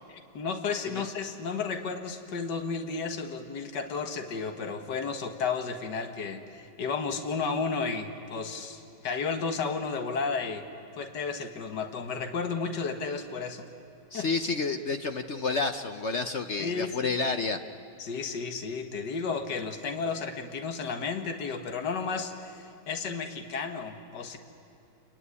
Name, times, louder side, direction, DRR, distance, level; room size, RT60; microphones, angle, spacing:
voice 1, 0.1-10.7 11.0-13.7 14.1-14.3 16.6-17.2 18.0-24.4, left 5 dB, 70° left, 5 dB, 2.0 m, -33 dB
voice 2, 14.1-17.6, left 4 dB, 50° left, 7 dB, 0.9 m, -29 dB
28.0 x 22.0 x 9.8 m, 2.8 s
omnidirectional pair, 2.0 m